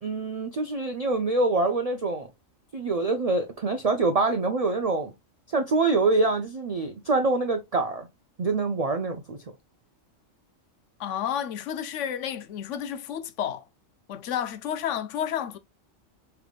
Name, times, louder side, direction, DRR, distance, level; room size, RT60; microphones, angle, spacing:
voice 1, 0.0-2.3 2.7-5.1 5.5-8.1 8.4-9.4, right 3 dB, 65° right, 0.3 m, -25 dB
voice 2, 11.0-13.7 14.1-15.6, left 9 dB, 70° left, 0.9 m, -31 dB
5.1 x 3.4 x 2.3 m
omnidirectional pair, 1.4 m